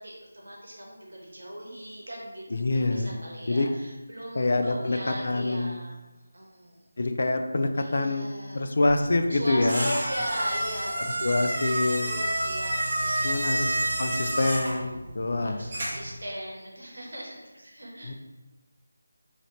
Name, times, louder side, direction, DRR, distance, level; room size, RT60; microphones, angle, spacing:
voice 1, 0.0-6.9 7.8-8.7 9.3-18.1, equal, 80° right, -2 dB, 1.0 m, -39 dB
voice 2, 2.5-3.1 3.5-3.7 4.4-5.0 5.2-5.7 7.0-8.3 8.5-9.9 11.2-12.1 13.2-13.7 14.0-15.6 18.0-18.1, left 2 dB, 55° left, 6 dB, 0.3 m, -26 dB
sound 1, 8.9-16.2, right 1 dB, 35° right, 0.7 m, -29 dB
2.9 x 2.8 x 2.7 m, 1.1 s
figure-of-eight pair, 165°, 0 cm